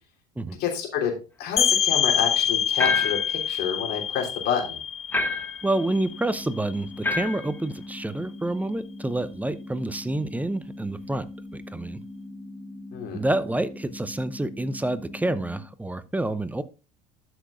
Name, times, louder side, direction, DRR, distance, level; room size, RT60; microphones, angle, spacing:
voice 1, 0.6-4.8 12.9-13.2, left 7 dB, 55° left, 2 dB, 3.2 m, -29 dB
sound 1, 1.6-7.0, left 8 dB, 30° left, 0.9 m, -26 dB
sound 2, 2.8-3.3 5.1-5.6 7.0-7.5, left 3 dB, 10° left, 1.2 m, -26 dB
voice 2, 5.6-11.3 11.5-12.0 13.1-16.6, right 1 dB, 10° right, 14 dB, 0.7 m, -28 dB
sound 3, 5.6-15.6, left 1 dB, 25° right, 3.9 m, -41 dB
12.5 x 6.1 x 2.4 m, 0.32 s
hypercardioid pair, 70°, 20 cm